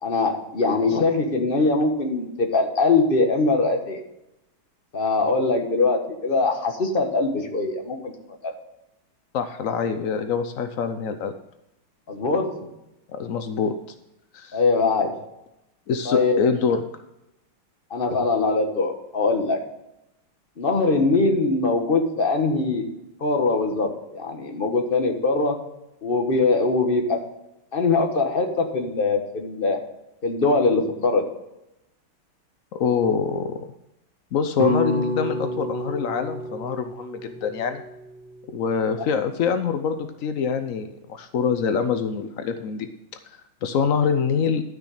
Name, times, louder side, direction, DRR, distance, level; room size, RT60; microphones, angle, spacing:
voice 1, 0.0-4.0 4.9-8.1 8.4-8.5 12.1-12.7 14.5-15.1 16.0-16.4 17.9-19.6 20.6-22.8 23.2-25.6 26.0-27.2 27.7-29.8 30.2-31.2, left 3 dB, 30° left, 4 dB, 1.4 m, -22 dB
voice 2, 9.3-11.3 13.1-13.7 14.3-14.6 15.9-16.8 32.7-33.6 34.3-37.8 38.5-42.9 43.6-44.6, left 6 dB, 80° left, 9 dB, 0.7 m, -25 dB
sound 1, 34.6-38.9, right 1 dB, 40° right, 0.8 m, -30 dB
12.5 x 6.1 x 4.9 m, 0.87 s
omnidirectional pair, 2.3 m